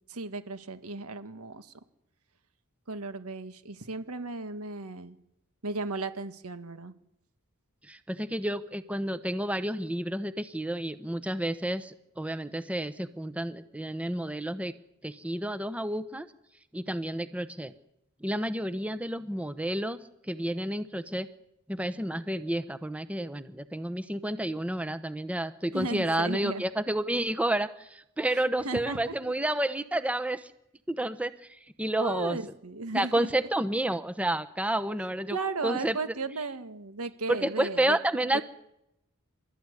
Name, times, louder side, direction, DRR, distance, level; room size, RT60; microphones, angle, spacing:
voice 1, 0.1-1.7 2.9-5.2 5.6-6.9 25.7-26.6 28.3-29.1 32.0-33.3 35.3-38.0, right 3 dB, 90° right, 10 dB, 1.8 m, -35 dB
voice 2, 7.8-14.7 15.0-16.3 16.7-17.7 18.2-20.0 20.3-21.3 21.7-30.5 30.9-32.4 32.9-35.4 35.6-36.1 37.3-38.4, right 1 dB, 5° right, 12 dB, 0.9 m, -30 dB
28.0 x 13.0 x 9.8 m, 0.83 s
head